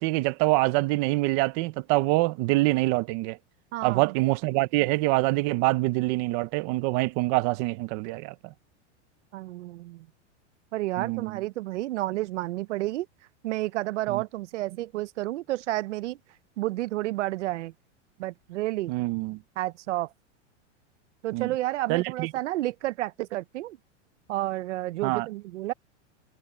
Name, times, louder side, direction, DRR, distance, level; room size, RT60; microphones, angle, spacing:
voice 1, 0.0-3.4 3.8-8.5 11.0-11.4 14.1-14.2 18.9-19.4 21.3-21.5 21.9-22.3 25.0-25.3, right 21 dB, 25° right, 0.5 m, -25 dB
voice 2, 3.7-4.0 9.3-10.1 10.7-13.1 13.4-16.2 16.6-17.7 18.2-18.9 19.6-20.1 21.2-23.8 24.3-25.7, right 16 dB, 80° right, 0.7 m, -30 dB
supercardioid pair, 170°, 35 cm